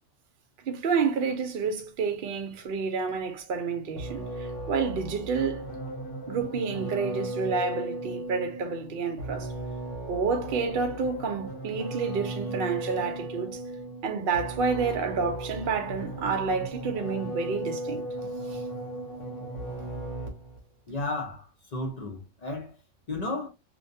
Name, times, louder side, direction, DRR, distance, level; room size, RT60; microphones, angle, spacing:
voice 1, 0.7-5.7 6.3-9.5 10.1-13.6 14.0-18.6, right 5 dB, 55° right, 0.7 m, -29 dB
sound 1, 4.0-20.6, right 1 dB, 85° left, 1.1 m, -36 dB
voice 2, 20.9-21.4 21.7-22.7 23.1-23.5, left 2 dB, 45° left, 0.5 m, -33 dB
2.6 x 2.2 x 2.6 m
omnidirectional pair, 1.3 m